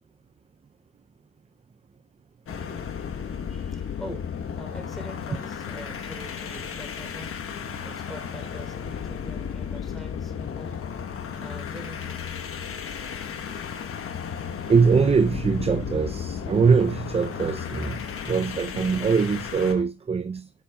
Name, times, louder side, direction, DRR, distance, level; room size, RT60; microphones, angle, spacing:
sound 1, 2.5-19.8, left 7 dB, 45° left, 1.1 m, -34 dB
voice 1, 3.2-7.4 7.8-10.7 11.4-12.2, equal, ahead, 3.3 m, -44 dB
sound 2, 4.9-19.8, left 10 dB, 85° left, 0.8 m, -42 dB
voice 2, 14.7-20.5, right 5 dB, 20° right, 0.4 m, -22 dB
10.0 x 6.9 x 2.2 m
cardioid pair, 90°, 30 cm